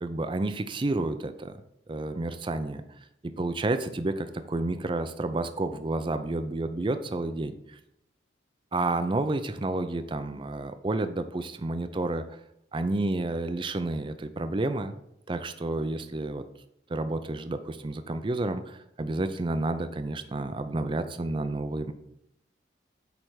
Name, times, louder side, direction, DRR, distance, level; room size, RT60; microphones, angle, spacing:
voice 1, 0.0-1.5 1.9-2.8 3.2-7.8 8.7-12.4 12.7-15.0 15.3-16.4 16.9-21.9, right 2 dB, 25° right, 10 dB, 0.4 m, -30 dB
8.6 x 3.4 x 6.2 m, 0.77 s
head